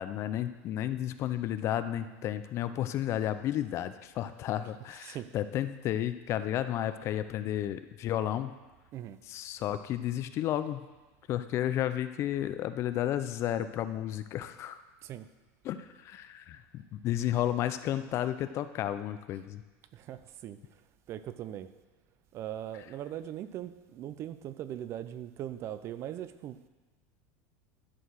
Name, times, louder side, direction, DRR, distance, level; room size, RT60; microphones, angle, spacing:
voice 1, 0.0-8.5 9.3-10.9 11.3-14.8 15.6-19.6, left 11 dB, 40° left, 12 dB, 0.4 m, -32 dB
voice 2, 4.8-5.3 8.9-9.2 15.0-15.3 19.9-20.6 21.1-21.7 22.3-26.6, right 11 dB, 35° right, 13 dB, 0.4 m, -40 dB
11.5 x 4.6 x 6.2 m, 1.2 s
supercardioid pair, 145°, 7 cm